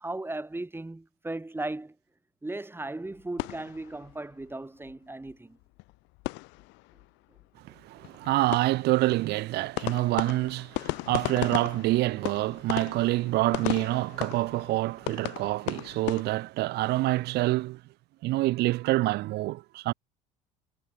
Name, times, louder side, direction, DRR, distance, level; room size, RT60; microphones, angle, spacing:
voice 1, 0.0-2.0 2.4-5.6 7.7-7.8, right 2 dB, 10° right, 3.9 m, -36 dB
sound 1, 3.1-4.5 4.8-4.9 5.2-5.3 5.6-7.1 7.3-7.5 7.7-16.2, left 25 dB, 60° left, 1.9 m, -36 dB
voice 2, 7.8-17.8 18.2-19.9, right 18 dB, 55° right, 0.8 m, -27 dB
figure-of-eight pair, 60°, 21 cm